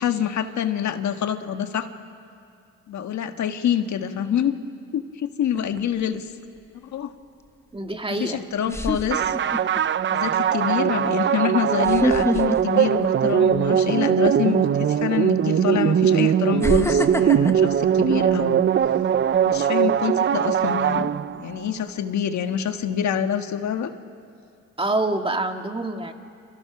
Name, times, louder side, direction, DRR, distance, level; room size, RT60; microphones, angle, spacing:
voice 1, 0.0-1.9 2.9-4.6 4.9-6.3 6.9-7.1 8.2-9.3 10.1-18.6 19.4-21.1 21.4-23.9, left 9 dB, 70° left, 7 dB, 1.6 m, -26 dB
sound 1, 5.5-6.0 7.9-8.0 8.7-9.8 10.2-10.5 11.8-13.7 14.0-14.3 15.3-15.4 16.6-18.9 19.3-19.6, left 1 dB, 10° left, 1.4 m, -27 dB
voice 2, 7.7-8.5 24.8-26.1, right 2 dB, 20° right, 4 dB, 2.0 m, -26 dB
sound 2, 9.1-21.6, right 9 dB, 40° right, 0.6 m, -21 dB
29.0 x 28.5 x 6.1 m, 2.4 s
cardioid pair, 90°, 30 cm